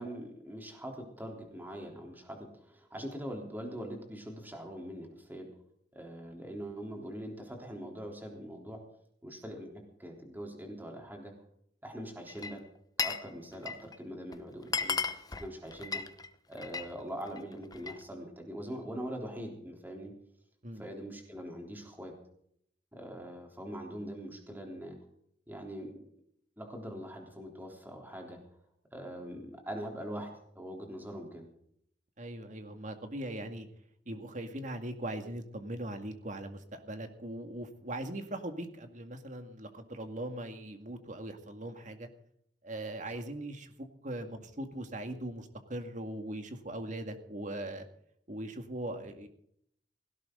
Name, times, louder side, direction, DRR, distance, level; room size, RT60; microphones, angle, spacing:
voice 1, 0.0-5.5 5.9-8.8 9.2-11.3 11.8-12.6 13.0-15.0 15.4-16.0 16.5-20.1 20.8-22.1 22.9-25.0 25.5-26.0 26.6-28.4 28.9-31.5, equal, 10° right, 2 dB, 3.6 m, -42 dB
Glass, 12.3-13.3 13.5-14.0 14.3-14.4 14.6-16.9 17.3-18.0, left 5 dB, 20° left, 0.9 m, -35 dB
voice 2, 32.2-33.7 34.1-42.1 42.6-47.9 48.3-49.3, right 1 dB, 45° right, 6 dB, 2.2 m, -40 dB
17.5 x 16.5 x 3.9 m, 0.68 s
head